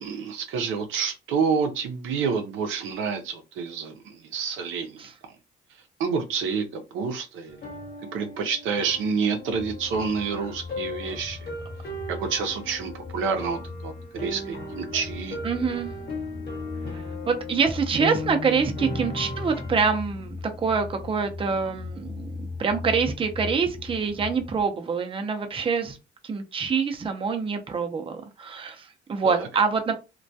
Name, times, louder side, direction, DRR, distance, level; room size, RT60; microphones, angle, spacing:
voice 1, 0.0-5.0 6.0-7.6 8.1-11.5 12.1-15.4 29.2-29.5, right 5 dB, 85° right, 5 dB, 0.6 m, -28 dB
sound 1, 7.5-19.7, left 2 dB, 50° left, 1.0 m, -37 dB
sound 2, 9.5-24.6, left 3 dB, 20° left, 0.7 m, -39 dB
voice 2, 15.4-15.9 16.9-26.0 26.2-29.9, right 5 dB, 25° right, 5 dB, 0.5 m, -26 dB
2.2 x 2.2 x 2.6 m, 0.28 s
cardioid pair, 90°, 20 cm